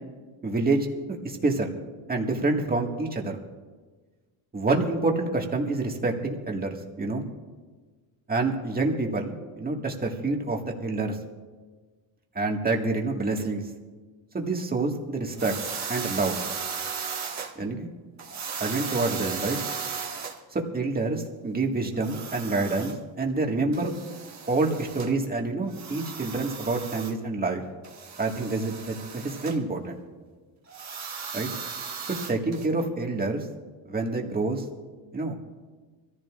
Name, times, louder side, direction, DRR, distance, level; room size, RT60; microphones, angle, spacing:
voice 1, 0.4-1.7 2.1-3.4 4.5-7.2 8.3-11.2 12.4-13.6 14.3-15.6 15.9-16.4 17.6-17.9 18.6-19.6 20.5-23.9 24.5-27.6 28.2-30.0 31.3-31.5 32.3-33.5 33.9-34.6 35.1-35.4, right 3 dB, 20° right, 1 dB, 1.9 m, -27 dB
sound 1, 15.4-17.5 18.2-20.4 21.9-22.9 23.7-25.1 25.7-27.1 27.8-29.6 30.7-32.7, right 6 dB, 35° right, 1.8 m, -36 dB
24.0 x 14.5 x 2.5 m, 1.4 s
cardioid pair, 115°, 46 cm